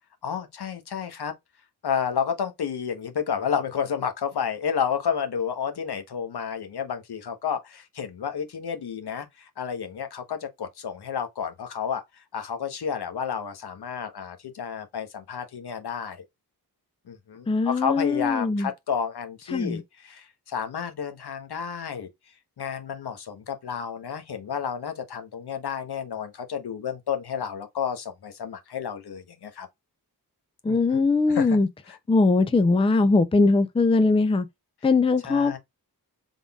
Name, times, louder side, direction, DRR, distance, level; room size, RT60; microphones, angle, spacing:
voice 1, 0.2-1.3 1.8-16.2 17.1-22.1 22.6-29.7 30.7-31.0 31.3-31.6 35.3-35.6, left 7 dB, 80° left, 1.0 m, -31 dB
voice 2, 17.5-18.7 19.5-19.8 30.6-31.7 32.1-34.5 34.8-35.6, left 3 dB, 15° left, 0.4 m, -21 dB
3.8 x 3.6 x 2.3 m
wide cardioid pair, 120°, 39 cm